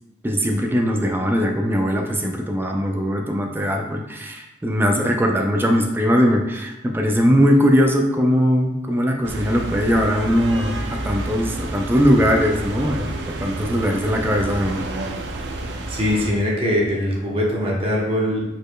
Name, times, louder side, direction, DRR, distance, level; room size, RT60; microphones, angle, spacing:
voice 1, 0.2-13.1 13.4-14.8, equal, 10° right, 2 dB, 0.3 m, -20 dB
sound 1, 9.2-16.3, right 2 dB, 70° right, 0.5 m, -29 dB
voice 2, 15.9-18.4, left 1 dB, 30° right, -3 dB, 0.9 m, -22 dB
4.9 x 4.2 x 2.2 m, 1.0 s
head